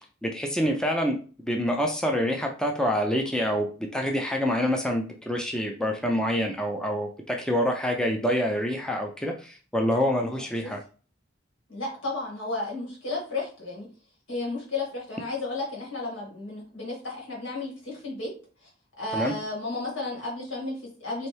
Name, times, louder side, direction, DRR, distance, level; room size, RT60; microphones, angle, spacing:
voice 1, 0.2-1.2 1.5-10.8 19.1-19.3, equal, 5° left, 2 dB, 0.4 m, -26 dB
voice 2, 10.2-10.7 11.7-13.9 14.3-18.3 18.6-18.7 19.0-21.3, left 2 dB, 80° left, -3 dB, 1.9 m, -33 dB
4.2 x 2.6 x 3.2 m, 0.38 s
head